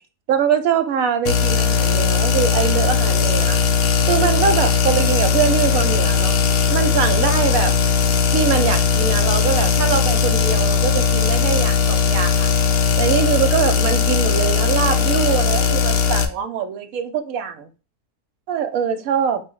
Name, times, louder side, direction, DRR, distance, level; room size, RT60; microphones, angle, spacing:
voice 1, 0.3-3.6 4.1-6.3 6.7-7.8 8.3-12.5 13.0-17.7 18.5-19.4, right 7 dB, 70° right, 1.0 m, -22 dB
sound 1, 1.3-16.3, left 6 dB, 70° left, 1.0 m, -18 dB
4.8 x 2.1 x 4.5 m
omnidirectional pair, 1.7 m